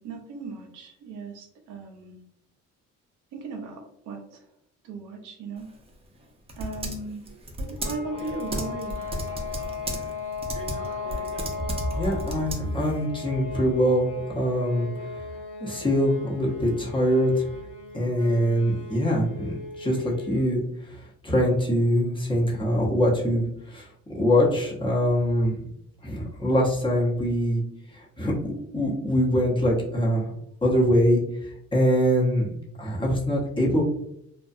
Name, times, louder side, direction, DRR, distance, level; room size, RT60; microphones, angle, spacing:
voice 1, 0.0-2.2 3.3-4.4 4.8-5.7 6.6-7.3 7.6-9.1, right 3 dB, 85° right, 3 dB, 0.6 m, -37 dB
Typing, 5.6-13.0, right 1 dB, 20° right, 0.5 m, -35 dB
sound 1, 7.8-20.6, left 3 dB, 75° left, 0.7 m, -37 dB
voice 2, 11.9-14.9 15.6-17.5 17.9-20.6 21.2-23.4 23.7-23.8 24.1-25.6 26.0-27.6 28.2-30.2 30.6-31.2 31.7-32.5 32.8-33.8, equal, 15° left, -4 dB, 0.8 m, -23 dB
2.3 x 2.1 x 2.5 m, 0.74 s
cardioid pair, 90°, 30 cm